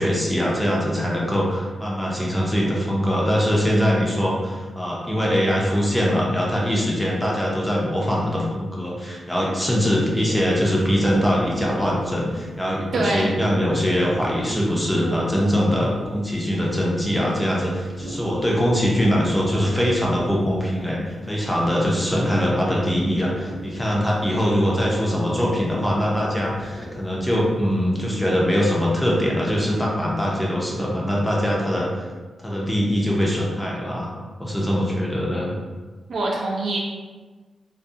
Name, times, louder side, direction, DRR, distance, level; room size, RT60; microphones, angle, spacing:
voice 1, 0.0-31.9 32.4-35.5, equal, 5° left, -4 dB, 0.5 m, -22 dB
sound 1, 10.0-28.0, equal, 65° left, 1.0 m, -37 dB
voice 2, 12.9-13.3 36.1-36.8, right 2 dB, 65° right, -2 dB, 0.4 m, -23 dB
2.4 x 2.2 x 2.6 m, 1.3 s
wide cardioid pair, 105°, 0 cm